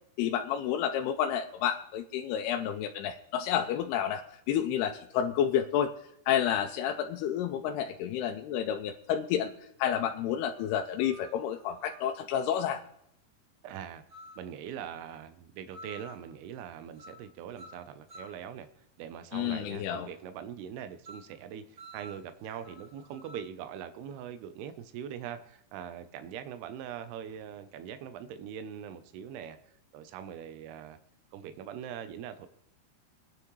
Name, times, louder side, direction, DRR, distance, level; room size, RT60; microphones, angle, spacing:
voice 1, 0.2-5.9 6.3-9.5 9.8-12.8 19.3-20.1, left 9 dB, 80° left, 3 dB, 2.6 m, -30 dB
sound 1, 9.5-9.6 10.5-12.1 14.1-14.5 15.7-16.3 16.9-17.3 17.6-18.4 21.0-21.3 21.8-23.5, equal, 55° right, 0.5 m, -51 dB
voice 2, 13.6-14.0 14.4-18.7 19.0-29.6 29.9-31.0 31.3-32.5, right 9 dB, 80° right, 10 dB, 2.8 m, -42 dB
23.0 x 9.5 x 3.1 m, 0.74 s
omnidirectional pair, 4.6 m